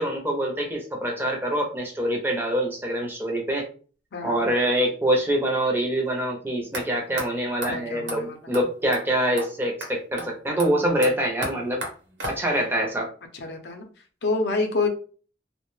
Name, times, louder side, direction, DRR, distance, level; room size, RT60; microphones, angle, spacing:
voice 1, 0.0-3.6 4.2-11.8 12.3-13.1, right 1 dB, 10° right, 0 dB, 0.5 m, -25 dB
voice 2, 4.1-4.4 7.7-8.4 13.3-13.8 14.2-14.9, left 3 dB, 70° left, 3 dB, 0.5 m, -27 dB
sound 1, 6.7-6.8 7.2-7.3 7.6-7.7 8.1-8.2 8.5-8.6 8.9-9.0 9.4-9.5 9.8-9.9 10.2-10.3 10.6-12.7, right 1 dB, 85° right, 0.8 m, -34 dB
2.2 x 2.1 x 3.1 m, 0.40 s
head